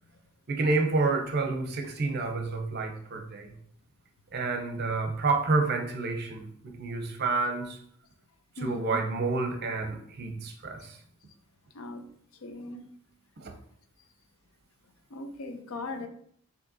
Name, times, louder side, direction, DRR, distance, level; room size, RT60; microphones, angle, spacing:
voice 1, 0.5-3.5 4.3-7.8 8.6-11.0 13.4-13.5, right 3 dB, 50° right, 4 dB, 0.7 m, -29 dB
voice 2, 8.6-9.0 11.7-12.0 12.4-12.9 15.1-16.1, left 2 dB, 75° left, 7 dB, 0.6 m, -39 dB
6.4 x 2.8 x 2.7 m, 0.64 s
head